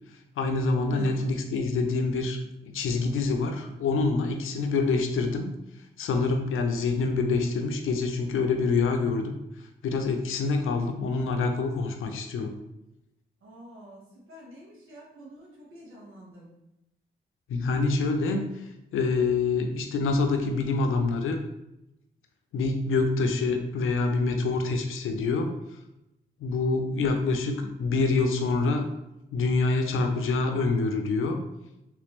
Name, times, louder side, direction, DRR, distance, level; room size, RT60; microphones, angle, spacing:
voice 1, 0.4-5.5 6.0-9.3 9.8-12.5 17.5-18.5 18.9-21.4 22.5-25.5 26.4-28.9 29.3-31.4, left 3 dB, 85° left, 5 dB, 0.5 m, -26 dB
voice 2, 13.4-14.0 14.3-16.5, right 1 dB, 80° right, -5 dB, 1.4 m, -46 dB
3.2 x 3.2 x 3.0 m, 0.89 s
supercardioid pair, 50°, 21 cm